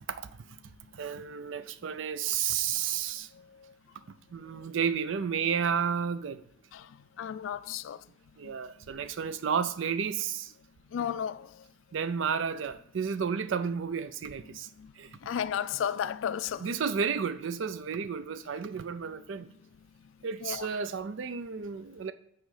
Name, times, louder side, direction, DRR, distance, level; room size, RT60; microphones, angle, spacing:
voice 1, 0.9-3.3 4.3-6.4 8.4-10.5 11.9-14.7 15.0-15.2 16.6-19.5 20.2-22.1, right 7 dB, 75° right, 0.4 m, -32 dB
voice 2, 7.2-8.0 10.9-11.5 15.3-16.7 20.4-20.7, left 8 dB, 80° left, 0.3 m, -32 dB
8.9 x 3.1 x 4.8 m
head